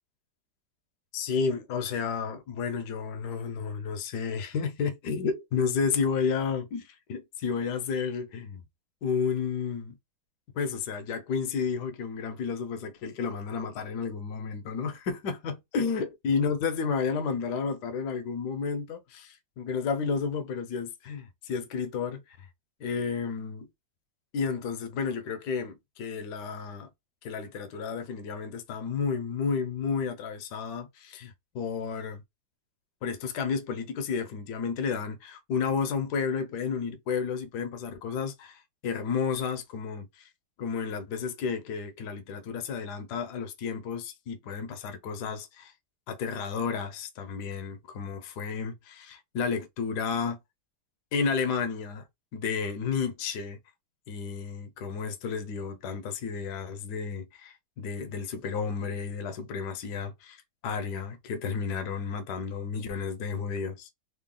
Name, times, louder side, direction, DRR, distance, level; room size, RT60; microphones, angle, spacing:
voice 1, 1.1-8.6 9.0-10.0 10.5-22.5 22.8-23.7 24.3-26.9 27.2-32.2 33.0-40.2 40.6-45.7 46.1-50.4 51.1-52.0 52.3-53.6 54.1-63.9, left 5 dB, 60° left, 1.2 m, -32 dB
3.8 x 2.3 x 3.7 m
omnidirectional pair, 2.3 m